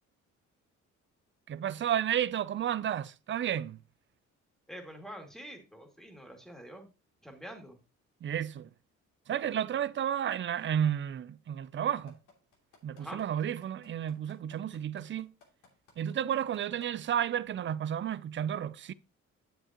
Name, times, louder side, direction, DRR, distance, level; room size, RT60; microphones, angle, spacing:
voice 1, 1.5-3.8 8.2-8.7 9.3-12.2 12.8-15.3 16.0-18.9, right 9 dB, 40° right, 0.5 m, -32 dB
voice 2, 4.7-6.9 7.2-7.8 13.0-13.2, equal, ahead, 2.4 m, -46 dB
sound 1, 12.1-16.9 17.4-17.5, left 5 dB, 80° left, 2.8 m, -59 dB
9.0 x 7.5 x 2.9 m
cardioid pair, 90°, 30 cm